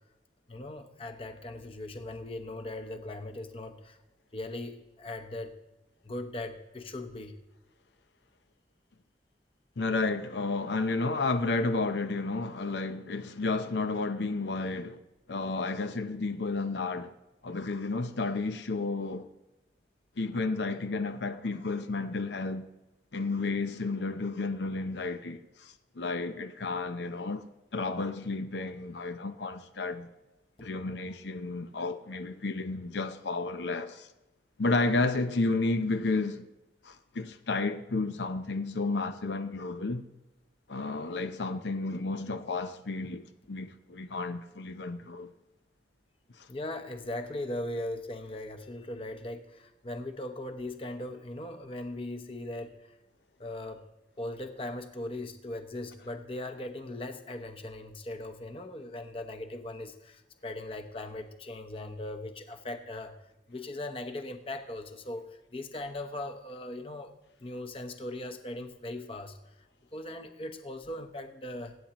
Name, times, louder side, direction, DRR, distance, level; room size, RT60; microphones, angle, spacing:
voice 1, 0.5-4.0 4.3-5.6 6.0-7.4 46.5-53.0 53.4-53.8 54.2-63.2 63.5-69.4 69.9-71.8, left 1 dB, 30° left, 0.9 m, -39 dB
voice 2, 9.8-15.0 15.3-17.1 17.4-19.3 20.2-22.7 23.1-27.4 27.7-30.1 30.6-34.1 34.6-36.5 36.8-40.0 40.7-43.2 43.5-45.3 46.4-46.5, left 3 dB, 85° left, 0.7 m, -32 dB
24.5 x 8.8 x 3.0 m
head